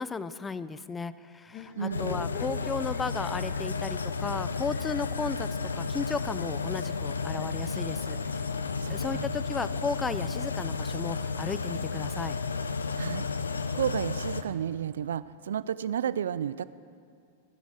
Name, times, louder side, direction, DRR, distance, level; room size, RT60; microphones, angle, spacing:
voice 1, 0.0-5.5 5.8-8.5 8.9-12.4, left 4 dB, 15° left, 15 dB, 0.5 m, -35 dB
sound 1, 1.5-7.6 8.6-9.7, left 4 dB, 40° left, 2.0 m, -48 dB
voice 2, 1.8-2.3 8.8-9.3 13.0-13.3 13.7-16.6, right 9 dB, 75° right, 17 dB, 0.3 m, -32 dB
sound 2, 1.9-14.4, left 4 dB, 90° left, 0.6 m, -32 dB
15.0 x 10.5 x 6.4 m, 2.3 s
hypercardioid pair, 105°, 0 cm